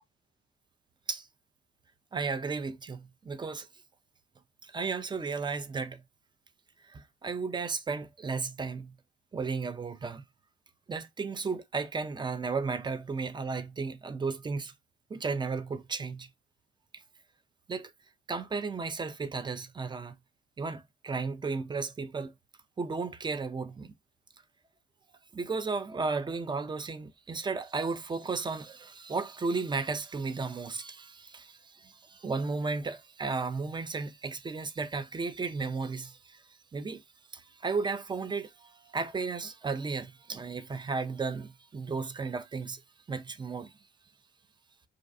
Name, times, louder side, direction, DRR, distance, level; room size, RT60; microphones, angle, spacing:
voice 1, 2.1-3.7 4.6-6.0 6.8-8.9 9.3-10.3 10.9-14.7 15.1-16.3 16.9-17.0 17.7-17.9 18.3-20.2 20.6-22.3 22.8-23.9 25.3-37.0 37.3-42.8 43.1-43.8, right 4 dB, 15° right, 0.3 m, -34 dB
2.4 x 2.2 x 2.4 m
hypercardioid pair, 50°, 35 cm